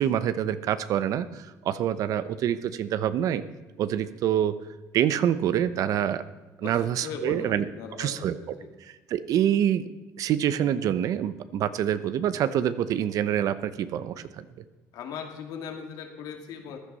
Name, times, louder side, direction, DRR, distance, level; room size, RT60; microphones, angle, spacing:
voice 1, 0.0-3.4 3.8-4.6 4.9-6.2 6.6-7.6 8.0-8.3 8.8-9.9 10.2-14.4, right 10 dB, 65° right, 13 dB, 0.8 m, -26 dB
voice 2, 6.6-8.7 14.9-16.8, left 6 dB, 75° left, 4 dB, 2.4 m, -39 dB
15.0 x 11.0 x 5.5 m, 1.2 s
cardioid pair, 105°, 6 cm